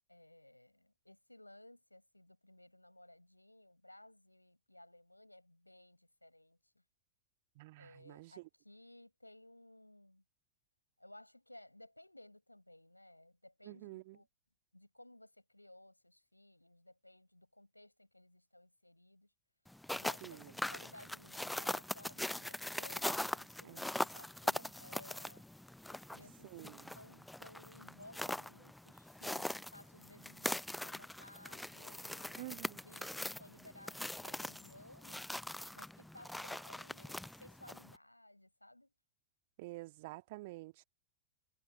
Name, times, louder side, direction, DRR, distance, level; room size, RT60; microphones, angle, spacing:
voice 1, 0.1-6.6 7.8-10.2 11.0-14.3 14.7-19.3 19.9-25.4 25.9-26.5 26.9-33.1 33.4-35.3 35.7-38.9, left 1 dB, 85° left, 6.5 m, -58 dB
voice 2, 7.5-8.5 13.6-14.2 20.2-20.5 23.6-23.9 26.4-26.9 32.4-32.8 39.6-40.8, right 21 dB, 50° right, 1.7 m, -49 dB
sound 1, 19.7-38.0, left 1 dB, 5° left, 0.4 m, -42 dB
figure-of-eight pair, 90°, 0 cm